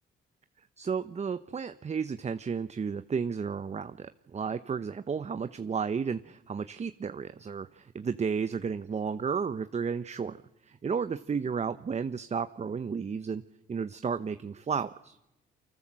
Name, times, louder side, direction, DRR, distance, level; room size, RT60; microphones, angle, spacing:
voice 1, 0.8-10.4 10.7-13.4 13.7-15.2, right 6 dB, 35° right, 11 dB, 1.0 m, -33 dB
28.5 x 25.0 x 7.7 m, 0.89 s
cardioid pair, 90°, 20 cm